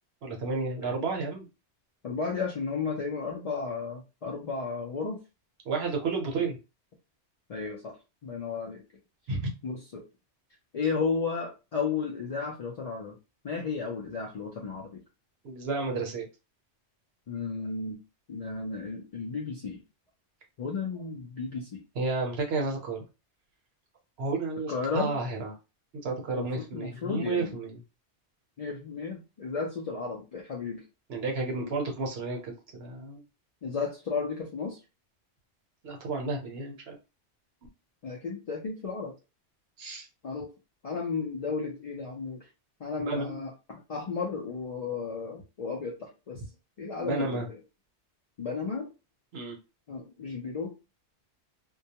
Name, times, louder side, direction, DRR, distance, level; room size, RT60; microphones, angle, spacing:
voice 1, 0.2-1.5 5.6-6.6 9.3-9.5 15.4-16.3 21.9-23.0 24.2-25.5 26.0-27.8 31.1-33.2 35.8-37.0 39.8-40.1 43.0-43.4 47.0-47.5 49.3-49.6, right 3 dB, 65° right, 1 dB, 0.9 m, -31 dB
voice 2, 2.0-5.2 7.5-8.0 8.2-8.8 9.6-10.0 10.7-13.2 13.4-15.0 17.3-18.0 18.3-19.8 20.6-21.8 24.7-25.1 26.4-27.6 28.6-30.8 31.6-31.7 33.6-34.8 38.0-39.1 40.2-40.5 40.8-42.5 42.8-46.4 46.8-47.6 48.4-48.9 49.9-50.7, left 4 dB, 55° left, -1 dB, 0.4 m, -33 dB
2.2 x 2.1 x 2.8 m, 0.28 s
omnidirectional pair, 1.1 m